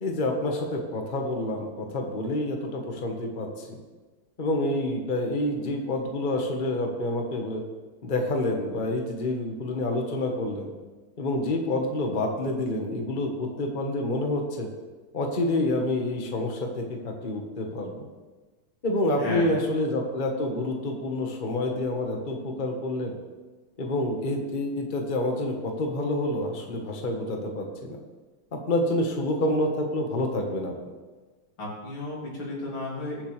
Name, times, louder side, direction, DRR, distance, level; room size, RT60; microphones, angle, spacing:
voice 1, 0.0-3.8 4.4-7.6 8.0-10.7 11.2-14.7 15.1-18.1 18.8-23.2 23.8-28.0 28.5-30.7, left 1 dB, 25° left, 2 dB, 1.3 m, -28 dB
voice 2, 19.2-19.6 31.6-33.2, left 2 dB, 85° left, -4 dB, 3.9 m, -33 dB
21.5 x 7.1 x 3.4 m, 1.3 s
omnidirectional pair, 2.3 m